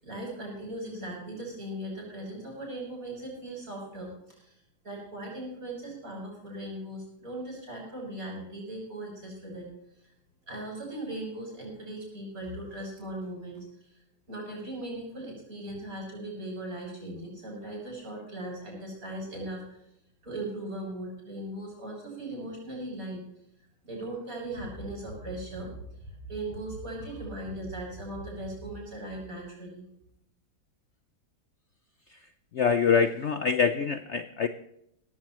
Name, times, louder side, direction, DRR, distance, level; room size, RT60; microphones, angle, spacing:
voice 1, 0.0-4.1 4.4-4.5 4.8-9.7 10.5-13.6 14.3-19.6 20.2-23.2 23.8-25.7 26.3-29.8, right 1 dB, 45° right, -2 dB, 7.5 m, -38 dB
voice 2, 32.5-34.5, left 6 dB, 80° left, 10 dB, 0.6 m, -25 dB
17.5 x 15.0 x 3.1 m, 0.76 s
omnidirectional pair, 2.1 m